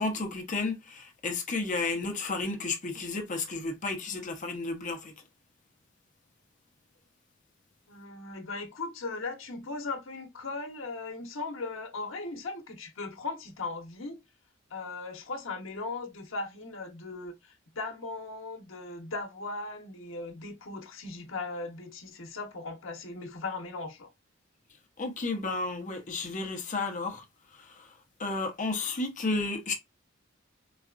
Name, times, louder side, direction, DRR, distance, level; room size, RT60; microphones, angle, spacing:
voice 1, 0.0-5.1 25.0-27.2 27.5-27.9 28.2-29.7, left 3 dB, 40° left, 0.7 m, -32 dB
voice 2, 7.9-14.2 14.7-24.1, left 3 dB, 70° left, 0.9 m, -38 dB
4.0 x 2.3 x 2.4 m
head